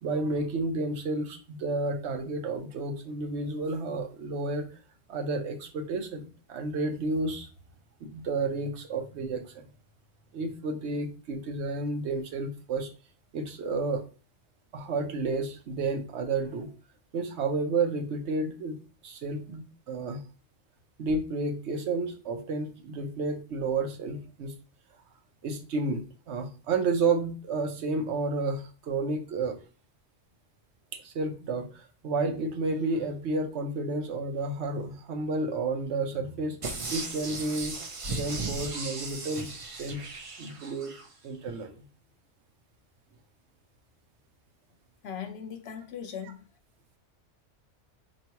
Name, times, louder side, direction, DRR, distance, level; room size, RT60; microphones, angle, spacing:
voice 1, 0.0-4.7 5.1-7.5 8.0-9.7 10.3-12.9 13.3-14.0 14.7-16.7 17.1-18.8 19.0-20.2 21.0-24.5 25.4-29.6 30.9-36.6 36.9-37.8 38.1-40.0 40.4-40.9 41.2-41.8 46.2-46.3, right 3 dB, 70° right, 6 dB, 0.9 m, -31 dB
sound 1, 36.6-41.1 41.5-41.6, right 3 dB, 40° right, 0.5 m, -36 dB
voice 2, 45.0-46.4, left 8 dB, 65° left, 5 dB, 0.8 m, -39 dB
4.4 x 3.0 x 2.8 m, 0.35 s
omnidirectional pair, 1.2 m